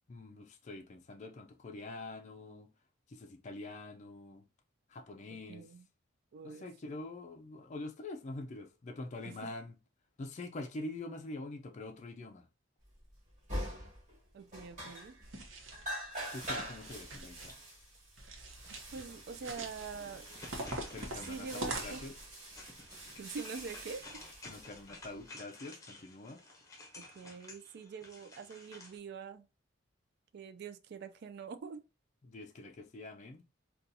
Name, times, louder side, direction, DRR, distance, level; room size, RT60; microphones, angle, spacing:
voice 1, 0.1-2.7 3.1-4.4 4.9-5.6 6.4-9.7 10.2-12.4 16.3-17.5 20.9-22.1 24.5-26.4 32.2-33.4, left 2 dB, 35° left, 0.4 m, -45 dB
voice 2, 5.5-5.9 6.3-6.6 9.2-9.4 14.3-15.2 18.9-20.3 21.2-22.0 23.2-24.2 27.0-29.4 30.3-31.8, right 5 dB, 55° right, 0.3 m, -44 dB
sound 1, 13.1-13.2 13.5-14.2 14.5-15.4 15.7-25.2, equal, 40° right, 1.9 m, -45 dB
sound 2, 15.2-15.9 16.4-17.5 18.2-19.1 19.3-19.9 20.5-22.3, right 2 dB, 80° right, 0.8 m, -43 dB
sound 3, 16.1-17.8 18.6-29.0, left 2 dB, 15° left, 0.8 m, -54 dB
3.9 x 2.3 x 2.6 m
head